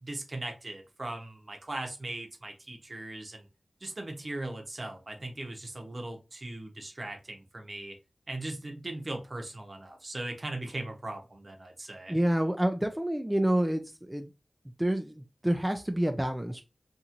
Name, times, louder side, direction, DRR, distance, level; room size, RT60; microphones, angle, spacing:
voice 1, 0.0-3.5 3.8-8.0 8.3-12.2, right 2 dB, 50° right, 3 dB, 0.8 m, -39 dB
voice 2, 12.1-13.8 14.1-14.3 14.8-16.6, right 1 dB, 10° right, 6 dB, 0.4 m, -28 dB
2.8 x 2.6 x 2.5 m, 0.29 s
cardioid pair, 40°, 0 cm